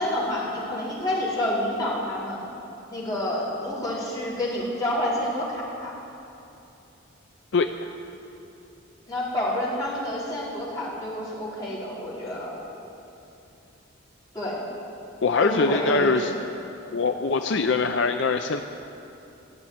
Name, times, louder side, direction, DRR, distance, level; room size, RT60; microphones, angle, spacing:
voice 1, 0.0-2.4 2.9-5.9 9.1-12.5 14.3-14.6 15.4-16.3, left 1 dB, 20° left, -9 dB, 4.2 m, -28 dB
voice 2, 15.2-16.3 16.9-18.6, left 4 dB, 60° left, 6 dB, 0.5 m, -23 dB
15.0 x 8.2 x 9.4 m, 2.9 s
head